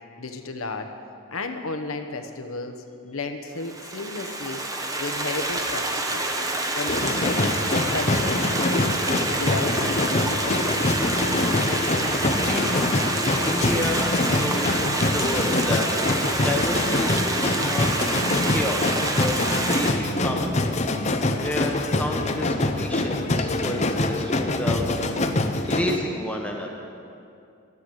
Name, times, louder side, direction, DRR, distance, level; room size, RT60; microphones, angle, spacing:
voice 1, 0.2-0.9 1.3-2.8 3.0-4.6 5.0-5.9 6.1-6.3 6.8-9.0 9.3-10.7, left 3 dB, 80° left, 6 dB, 1.1 m, -33 dB
Stream, 3.6-19.9, right 2 dB, 15° right, 0.9 m, -27 dB
sound 1, 6.9-26.0, left 2 dB, 35° left, 0.7 m, -25 dB
voice 2, 12.4-12.7 13.4-17.9 18.5-19.3 19.6-20.6 21.4-25.2 25.7-26.7, left 1 dB, 5° left, 1 dB, 1.0 m, -30 dB
13.5 x 8.0 x 9.0 m, 2.5 s
head